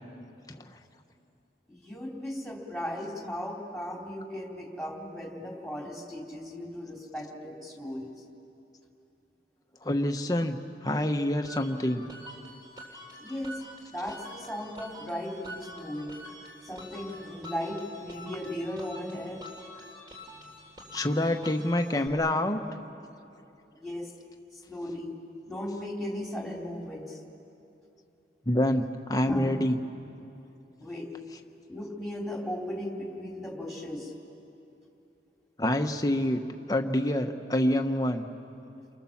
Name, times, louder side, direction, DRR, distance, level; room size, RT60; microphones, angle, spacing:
voice 1, 1.7-8.1 13.2-13.5 13.9-16.2 16.6-19.4 20.3-20.5 20.8-21.0 23.7-24.1 24.5-25.1 25.5-27.2 29.3-29.6 30.8-31.1 31.7-34.1, left 1 dB, ahead, -1 dB, 3.2 m, -36 dB
voice 2, 9.8-12.0 20.9-22.6 28.5-29.8 35.6-36.4 36.7-38.3, left 1 dB, 20° left, 5 dB, 1.0 m, -27 dB
sound 1, 11.4-22.1, equal, 25° right, 3.4 m, -47 dB
30.0 x 24.0 x 7.3 m, 2.8 s
head